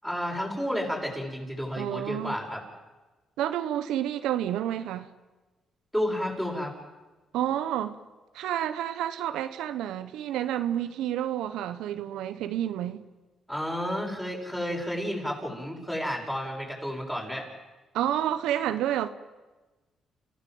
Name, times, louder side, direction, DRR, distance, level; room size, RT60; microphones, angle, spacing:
voice 1, 0.0-2.6 5.9-6.7 13.5-17.4, equal, 5° left, 7.0 m, -31 dB
voice 2, 1.8-2.4 3.4-5.1 7.3-8.0 8.3-13.0 17.9-19.1, right 11 dB, 90° right, 1.0 m, -29 dB
29.0 x 15.5 x 7.9 m
cardioid pair, 90°, 0 cm